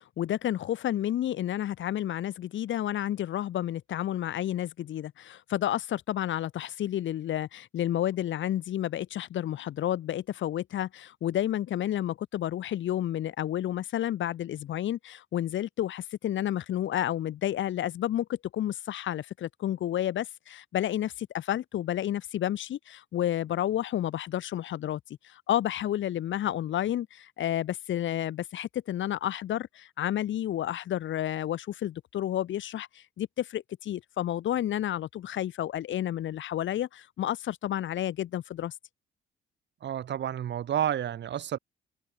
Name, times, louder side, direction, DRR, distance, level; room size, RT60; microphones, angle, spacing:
voice 1, 0.0-38.7, left 12 dB, 70° left, 2.8 m, -31 dB
voice 2, 39.8-41.6, right 10 dB, 65° right, 2.4 m, -30 dB
cardioid pair, 90°, 20 cm